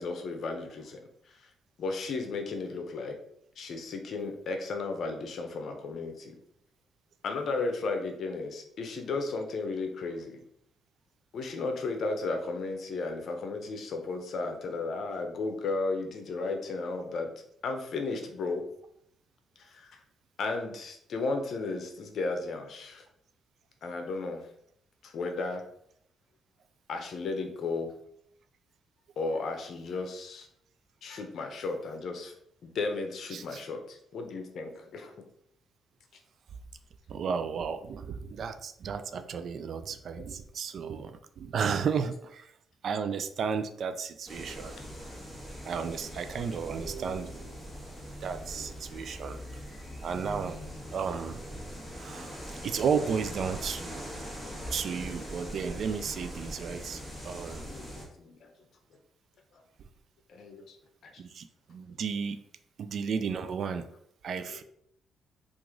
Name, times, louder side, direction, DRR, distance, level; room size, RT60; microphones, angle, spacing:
voice 1, 0.0-1.5 1.8-3.2 3.6-6.4 7.2-10.4 11.3-17.3 17.6-18.6 19.6-20.0 20.4-23.0 23.8-24.5 25.0-25.6 26.9-27.9 29.2-30.5 31.0-32.3 32.6-35.1 48.5-48.7 54.4-54.7 55.4-55.6 55.9-56.0 57.6-58.5 60.3-60.8 61.0-61.2 64.5-64.6, left 3 dB, 60° left, 4 dB, 0.7 m, -34 dB
voice 2, 37.1-42.5 42.8-44.8 45.6-47.6 48.2-49.4 50.0-50.6 50.9-51.4 52.0-52.4 52.6-54.3 54.7-57.7 61.2-62.4 62.8-63.9 64.2-64.6, right 6 dB, 60° right, 10 dB, 0.3 m, -33 dB
sound 1, 44.3-58.0, equal, 10° right, 1.3 m, -41 dB
3.0 x 2.5 x 3.6 m, 0.70 s
cardioid pair, 90°, 0 cm